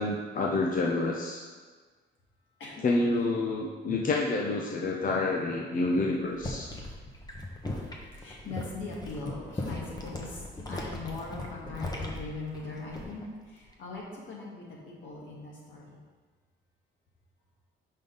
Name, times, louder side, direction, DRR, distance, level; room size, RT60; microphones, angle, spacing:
voice 1, 0.0-1.4 2.8-6.7, left 2 dB, 45° left, -1 dB, 0.7 m, -28 dB
voice 2, 2.6-2.9 5.8-5.9 6.8-7.0 7.5-16.0, left 3 dB, 75° left, -4 dB, 1.8 m, -41 dB
sound 1, 6.2-13.3 13.6-14.0, left 1 dB, 20° left, 1.0 m, -38 dB
5.5 x 5.3 x 3.9 m, 1.4 s
cardioid pair, 90°, 20 cm